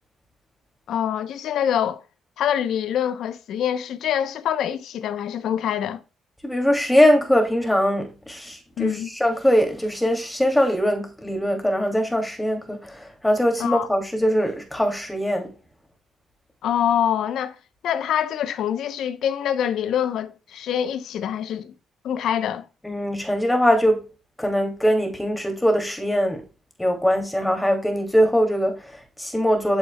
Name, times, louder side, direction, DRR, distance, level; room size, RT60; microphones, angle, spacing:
voice 1, 0.9-2.0 2.4-6.0 8.8-9.1 13.6-13.9 16.6-17.6 17.8-21.7 22.0-22.7, left 9 dB, 75° left, 0.7 m, -25 dB
voice 2, 6.4-15.5 22.8-24.0 24.4-26.4 26.8-29.8, equal, 5° left, 2.6 m, -21 dB
8.7 x 7.1 x 2.3 m
cardioid pair, 90°, 0 cm